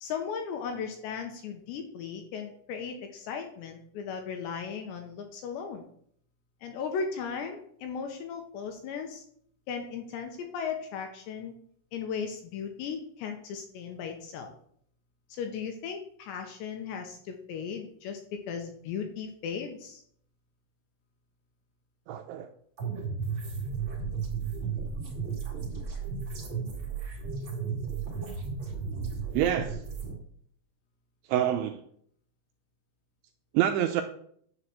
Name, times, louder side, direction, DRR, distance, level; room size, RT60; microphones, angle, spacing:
voice 1, 0.0-5.8 6.6-9.2 9.7-11.5 11.9-14.5 15.3-20.0, left 6 dB, 75° left, 4 dB, 2.8 m, -36 dB
voice 2, 22.1-22.5 29.3-29.8 31.3-31.8 33.5-34.0, right 11 dB, 85° right, 7 dB, 2.7 m, -26 dB
sound 1, 22.8-30.1, right 5 dB, 40° right, 1.6 m, -34 dB
10.5 x 4.9 x 7.1 m, 0.65 s
omnidirectional pair, 5.9 m